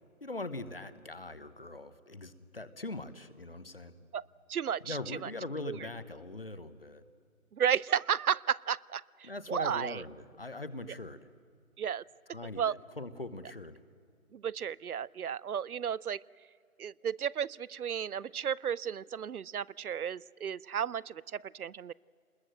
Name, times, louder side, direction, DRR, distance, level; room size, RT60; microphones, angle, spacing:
voice 1, 0.2-3.9 4.8-7.0 9.2-11.3 12.3-13.8, left 2 dB, 40° left, 13 dB, 1.0 m, -41 dB
voice 2, 4.5-5.0 5.7-5.8 7.5-10.0 11.8-12.0 12.6-12.8 14.3-16.2 16.8-21.9, right 8 dB, 85° right, 24 dB, 0.6 m, -33 dB
24.0 x 21.0 x 7.7 m, 2.4 s
figure-of-eight pair, 175°, 43 cm